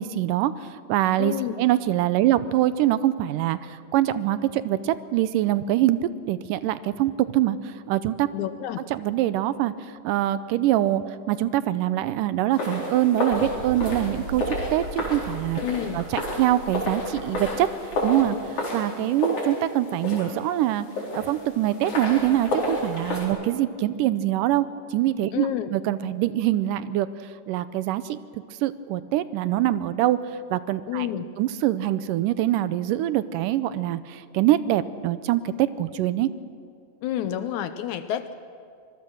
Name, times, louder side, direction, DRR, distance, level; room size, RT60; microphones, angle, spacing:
voice 1, 0.0-6.0 6.3-8.3 8.9-9.7 10.0-15.6 15.9-17.7 18.0-20.9 21.1-24.7 24.9-27.1 27.5-28.2 28.6-30.2 30.5-31.1 31.4-36.3, right 13 dB, 85° right, 14 dB, 2.3 m, -24 dB
voice 2, 1.2-1.5 8.3-8.8 15.6-16.0 25.3-25.7 30.9-31.3 37.0-38.3, left 11 dB, 75° left, 10 dB, 1.9 m, -29 dB
sound 1, 12.5-23.3, left 1 dB, 60° left, 5.6 m, -31 dB
sound 2, 13.3-18.4, right 2 dB, 50° right, 2.4 m, -39 dB
25.5 x 20.5 x 6.2 m, 2.3 s
omnidirectional pair, 3.8 m